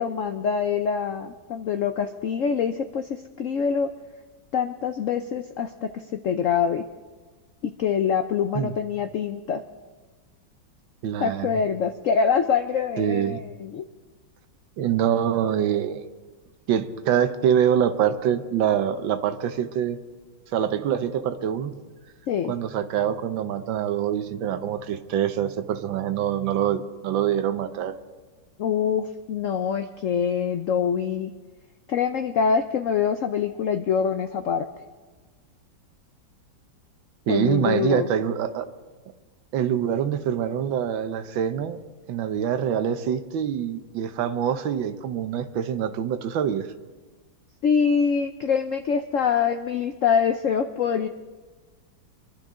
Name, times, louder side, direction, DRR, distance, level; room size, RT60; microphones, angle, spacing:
voice 1, 0.0-3.9 4.5-6.8 7.6-9.6 11.2-13.8 22.3-22.5 28.6-31.3 31.9-34.7 37.3-38.1 47.6-51.1, left 6 dB, 80° left, 8 dB, 0.7 m, -25 dB
voice 2, 11.0-11.6 13.0-13.4 14.8-16.0 16.7-20.0 20.5-21.7 22.5-28.0 37.3-38.7 39.5-41.8 42.1-46.7, right 9 dB, 80° right, 10 dB, 1.6 m, -25 dB
25.0 x 11.5 x 3.7 m, 1.3 s
omnidirectional pair, 2.1 m